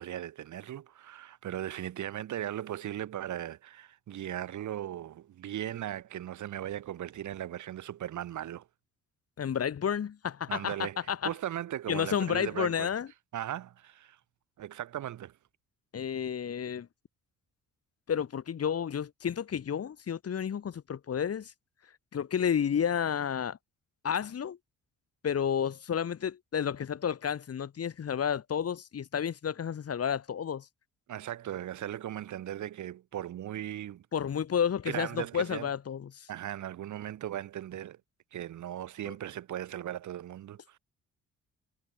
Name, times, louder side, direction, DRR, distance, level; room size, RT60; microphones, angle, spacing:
voice 1, 0.0-8.7 10.5-12.9 13.3-14.2 14.6-15.4 31.1-34.1 34.9-35.7 36.3-38.0 38.3-40.8, right 12 dB, 75° right, 6.6 m, -38 dB
voice 2, 9.4-11.3 11.9-13.1 15.9-16.9 18.1-21.5 22.1-23.6 24.0-24.6 25.2-30.7 34.1-36.3 39.1-39.2, left 8 dB, 50° left, 4.2 m, -31 dB
cardioid pair, 90°, 30 cm